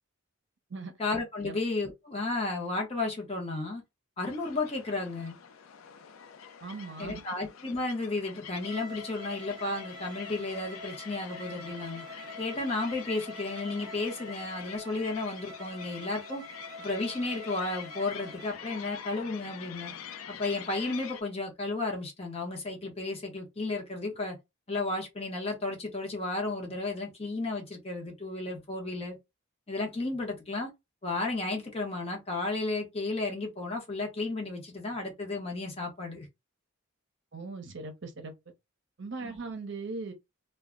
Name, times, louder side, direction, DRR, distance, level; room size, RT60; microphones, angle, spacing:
voice 1, 1.0-3.8 4.2-5.4 7.0-12.0 12.4-16.4 16.8-19.9 20.3-24.4 24.7-29.2 29.7-30.7 31.0-36.3 39.2-39.4, left 2 dB, 30° left, 0.7 m, -33 dB
sound 1, 4.2-21.2, left 8 dB, 90° left, 0.4 m, -46 dB
voice 2, 6.6-7.2 37.3-38.3 39.0-40.1, right 3 dB, 60° right, 0.6 m, -39 dB
Bowed string instrument, 8.5-18.6, left 1 dB, 20° right, 0.5 m, -46 dB
2.2 x 2.0 x 3.5 m
head